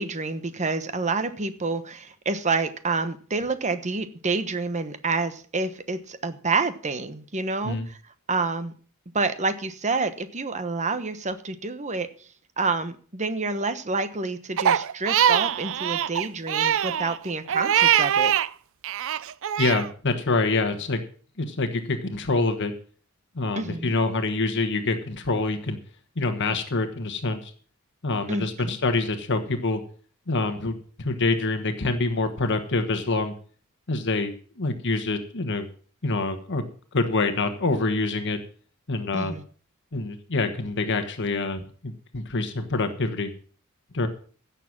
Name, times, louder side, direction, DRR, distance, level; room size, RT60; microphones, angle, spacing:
voice 1, 0.0-8.0 8.3-8.7 9.1-12.1 12.6-18.3 23.5-23.9 28.3-28.8 39.1-39.4, right 3 dB, 35° right, 1.1 m, -28 dB
Crying sobbing, 14.6-18.5 18.8-19.9, right 9 dB, 60° right, 0.5 m, -23 dB
voice 2, 19.6-21.0 21.4-22.7 23.3-25.8 26.2-27.5 28.0-29.8 30.3-33.3 33.9-35.7 36.0-36.7 36.9-38.4 38.9-39.3 39.9-43.3 43.9-44.1, left 3 dB, 55° left, 1.3 m, -26 dB
16.0 x 6.9 x 6.0 m
head